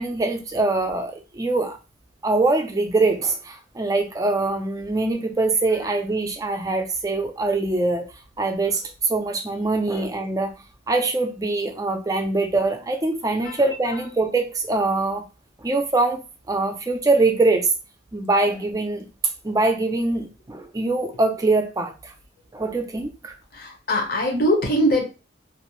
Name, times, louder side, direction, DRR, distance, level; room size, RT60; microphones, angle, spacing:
voice 1, 0.0-1.8 2.2-8.0 8.4-10.5 10.9-15.2 15.6-16.2 16.5-17.7 18.1-19.1 19.4-22.1 22.5-23.4, right 3 dB, 20° right, 5 dB, 0.4 m, -23 dB
voice 2, 23.5-25.0, equal, 55° left, 2 dB, 0.8 m, -21 dB
2.5 x 2.0 x 2.9 m, 0.32 s
head